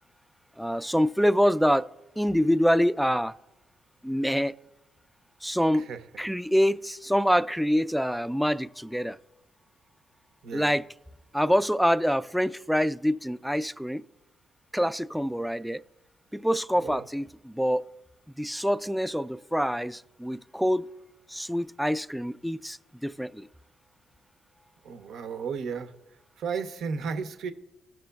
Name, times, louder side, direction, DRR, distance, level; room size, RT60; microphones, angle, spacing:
voice 1, 0.6-1.9 2.2-3.3 4.0-4.5 5.4-5.9 6.2-9.2 10.5-10.8 11.3-14.0 14.7-15.8 16.3-17.8 18.4-20.9 21.3-23.5, equal, ahead, 0.3 m, -25 dB
voice 2, 10.4-10.8 16.7-17.0 24.8-25.9 26.4-27.5, right 5 dB, 70° right, 0.6 m, -34 dB
15.5 x 6.0 x 2.3 m
supercardioid pair, 55°, 0 cm